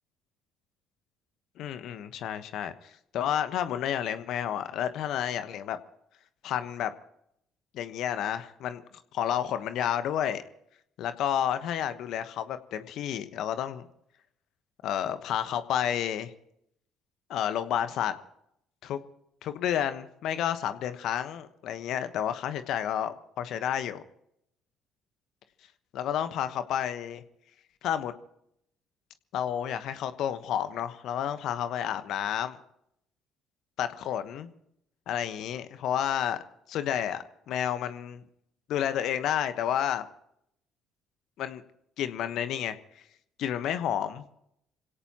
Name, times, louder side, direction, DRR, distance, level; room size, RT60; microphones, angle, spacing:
voice 1, 1.6-5.8 6.4-6.9 7.7-8.8 9.1-10.4 11.0-13.9 14.8-16.3 17.3-18.2 18.8-19.0 19.4-24.0 25.9-27.2 27.8-28.1 29.3-32.6 33.8-34.5 35.1-36.4 36.7-38.2 38.7-40.1 41.4-41.6 42.0-42.8 43.4-44.4, left 10 dB, 65° left, 11 dB, 1.1 m, -30 dB
27.0 x 17.0 x 3.0 m, 0.75 s
hypercardioid pair, 55°, 0 cm